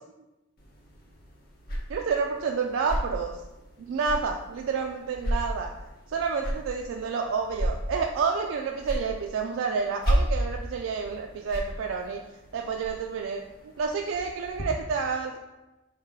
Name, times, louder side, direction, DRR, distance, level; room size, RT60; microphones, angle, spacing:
sound 1, 0.6-14.6, equal, 50° left, 0.8 m, -34 dB
voice 1, 1.9-3.4 3.8-5.7 6.1-12.2 12.5-13.4 13.8-15.4, right 5 dB, 80° right, 2 dB, 0.3 m, -29 dB
4.6 x 3.1 x 3.6 m, 1.0 s
head